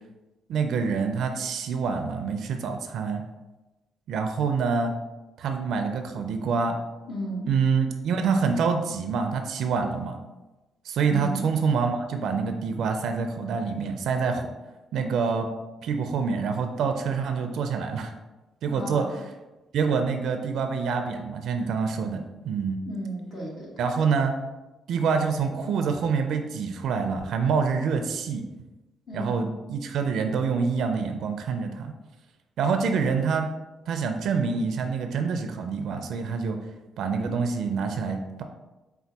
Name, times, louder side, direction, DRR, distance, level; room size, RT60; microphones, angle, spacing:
voice 1, 0.5-3.2 4.1-4.9 5.4-6.8 7.5-10.2 10.8-14.5 14.9-15.5 15.8-18.1 18.6-19.0 19.7-22.8 23.8-24.3 24.9-28.4 29.1-31.9 32.6-33.5 33.9-36.6 37.0-38.4, right 5 dB, 75° right, 6 dB, 0.4 m, -26 dB
voice 2, 7.1-7.5 11.1-11.5 18.7-19.1 22.8-23.8 29.1-29.5, equal, 55° left, -2 dB, 1.3 m, -34 dB
4.4 x 2.2 x 4.1 m, 1.1 s
cardioid pair, 90°, 0 cm